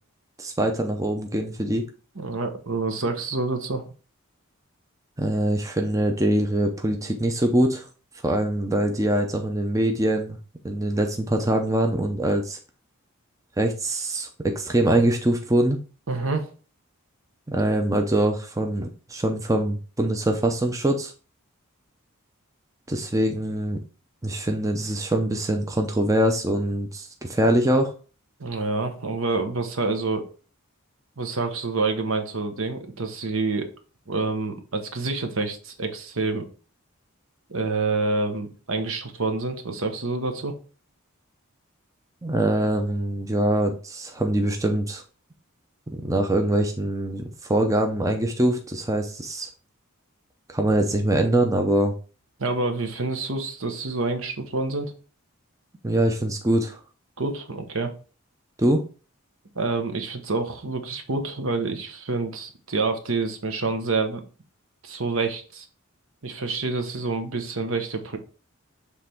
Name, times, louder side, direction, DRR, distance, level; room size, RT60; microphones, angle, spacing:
voice 1, 0.4-1.8 5.2-7.9 8.2-10.4 10.6-12.6 13.6-15.8 17.5-21.1 22.9-23.8 24.2-27.9 42.2-45.0 45.9-49.5 50.5-51.9 55.8-56.8 58.6-58.8, right 1 dB, 15° right, 4 dB, 0.6 m, -23 dB
voice 2, 2.2-3.8 16.1-16.5 28.4-30.3 31.2-33.7 34.1-36.5 37.5-40.5 52.4-54.9 57.2-57.9 59.5-64.2 64.8-65.7 66.2-68.2, right 3 dB, 65° right, 6 dB, 1.1 m, -27 dB
7.4 x 3.4 x 4.4 m, 0.36 s
head